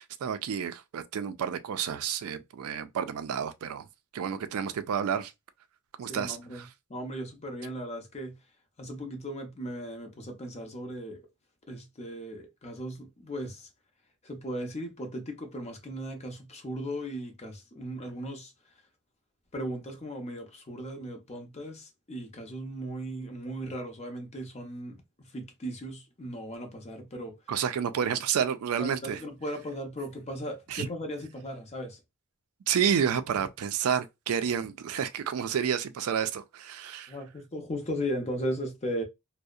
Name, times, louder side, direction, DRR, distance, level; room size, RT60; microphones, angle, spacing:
voice 1, 0.0-3.8 4.1-5.3 6.0-6.7 27.5-29.2 30.7-30.9 32.7-37.1, right 8 dB, 70° right, 0.4 m, -30 dB
voice 2, 6.1-6.6 6.9-8.3 8.8-11.2 11.7-13.7 14.2-18.5 19.5-27.4 28.8-32.0 37.1-39.0, equal, 30° left, 0.6 m, -37 dB
2.6 x 2.0 x 2.3 m
head